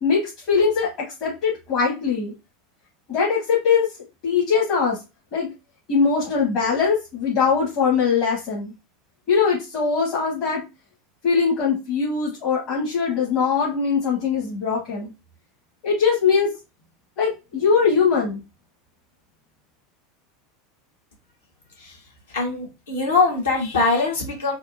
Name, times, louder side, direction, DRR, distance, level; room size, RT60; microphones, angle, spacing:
voice 1, 0.0-2.3 3.1-3.9 4.2-5.0 5.3-5.5 5.9-8.7 9.3-10.6 11.2-15.1 15.8-16.5 17.2-18.4, left 5 dB, 45° left, -5 dB, 1.3 m, -21 dB
voice 2, 22.3-24.5, left 3 dB, 70° left, -2 dB, 1.4 m, -22 dB
3.6 x 2.4 x 2.6 m, 0.27 s
figure-of-eight pair, 80°, 0 cm